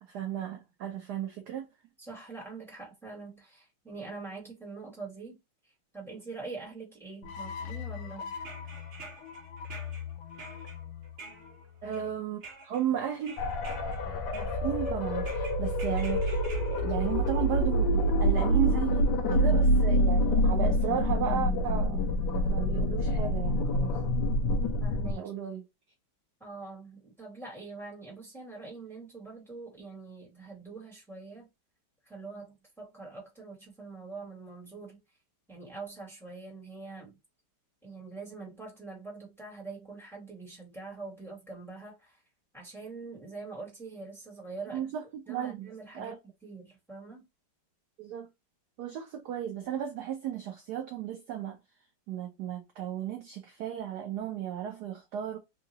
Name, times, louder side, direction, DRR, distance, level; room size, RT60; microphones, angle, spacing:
voice 1, 0.1-1.7 11.8-13.4 14.3-16.4 16.7-22.0 22.5-23.9 25.1-25.6 44.7-45.7 45.9-46.2 48.0-48.3 48.8-51.6 52.1-55.4, right 9 dB, 70° right, 1.0 m, -34 dB
voice 2, 2.0-5.4 5.6-8.3 11.8-12.3 24.8-25.3 26.4-31.5 32.0-35.0 35.5-37.1 37.8-42.2 42.5-44.8 45.3-46.2 46.4-47.2, right 3 dB, ahead, 1.7 m, -44 dB
sound 1, 7.2-12.4, left 7 dB, 80° left, 1.4 m, -42 dB
sound 2, 8.3-12.1 12.4-12.8 13.2-14.0 14.3-14.9 15.3-17.9 18.9-19.0 20.1-20.2 20.5-20.6, right 3 dB, 55° right, 0.8 m, -48 dB
sound 3, 13.4-25.1, equal, 65° left, 1.3 m, -26 dB
3.8 x 2.7 x 2.7 m
omnidirectional pair, 2.3 m